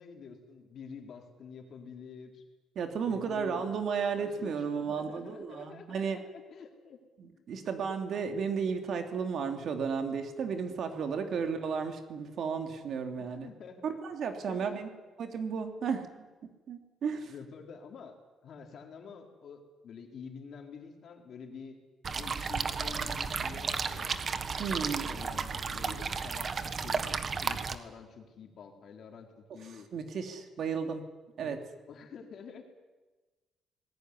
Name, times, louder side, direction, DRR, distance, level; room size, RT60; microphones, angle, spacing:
voice 1, 0.0-2.4 3.0-3.7 4.1-7.0 11.3-11.5 13.1-13.8 14.5-14.8 17.1-18.2 18.4-21.8 22.1-24.2 24.7-27.1 27.4-29.9 31.4-31.6 31.9-32.6, left 6 dB, 45° left, 3 dB, 4.0 m, -48 dB
voice 2, 2.7-6.2 7.2-13.5 13.8-14.9 15.2-16.1 16.7-17.3 24.6-25.1 25.8-26.1 29.9-31.0 31.4-31.6, right 6 dB, 50° right, 6 dB, 2.9 m, -33 dB
sound 1, 22.0-27.8, right 5 dB, 30° right, 1.5 m, -33 dB
27.5 x 20.0 x 9.9 m, 1.2 s
cardioid pair, 165°, 0 cm